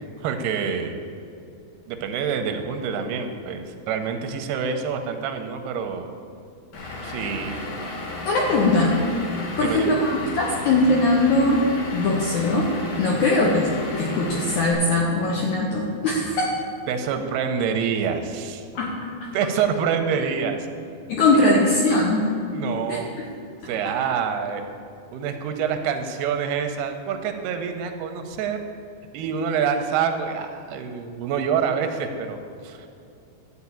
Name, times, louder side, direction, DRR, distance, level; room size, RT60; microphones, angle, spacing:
voice 1, 0.2-1.0 1.9-6.1 7.0-7.6 9.6-10.0 13.1-13.2 16.9-18.7 19.3-20.6 21.3-21.5 22.5-23.2 23.7-24.6 25.1-28.6 29.1-32.4 32.6-32.9, right 7 dB, 85° right, 7 dB, 2.7 m, -26 dB
Vehicle / Engine, 6.7-14.7, left 2 dB, 55° left, 3.8 m, -34 dB
voice 2, 8.3-9.0 9.6-11.6 11.9-13.7 14.0-16.5 18.8-18.9 21.1-22.3 22.9-23.3, left 2 dB, 75° left, -2 dB, 1.7 m, -21 dB
13.0 x 4.4 x 8.5 m, 2.5 s
omnidirectional pair, 4.6 m